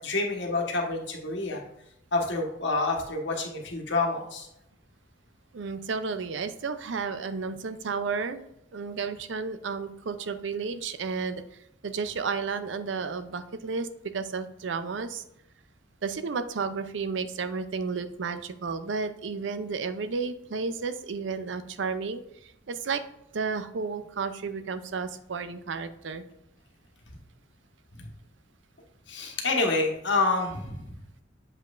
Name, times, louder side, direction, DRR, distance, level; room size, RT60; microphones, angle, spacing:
voice 1, 0.0-1.6 2.1-4.5 29.1-30.9, left 3 dB, 70° left, 1 dB, 1.3 m, -28 dB
voice 2, 5.5-8.4 8.7-11.4 11.8-15.2 16.0-23.0 23.3-26.2, right 5 dB, 85° right, 11 dB, 0.5 m, -32 dB
7.3 x 5.3 x 2.5 m, 0.81 s
head